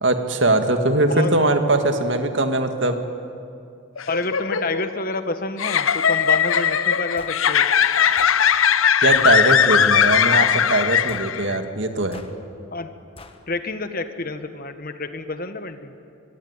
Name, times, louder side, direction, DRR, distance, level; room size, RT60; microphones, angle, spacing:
voice 1, 0.0-3.0 9.0-12.2, right 2 dB, 65° right, 6 dB, 2.1 m, -21 dB
sound 1, 4.0-11.6, left 8 dB, 85° left, 0.8 m, -19 dB
voice 2, 4.1-7.7 12.7-12.9 13.5-15.9, left 3 dB, 45° left, 9 dB, 1.4 m, -29 dB
sound 2, 7.2-7.4 8.2-8.4 9.1-9.3 10.1-10.4 11.1-11.4 12.1-12.3 13.2-13.4, left 3 dB, 25° left, 1.5 m, -42 dB
24.0 x 24.0 x 9.8 m, 2.5 s
head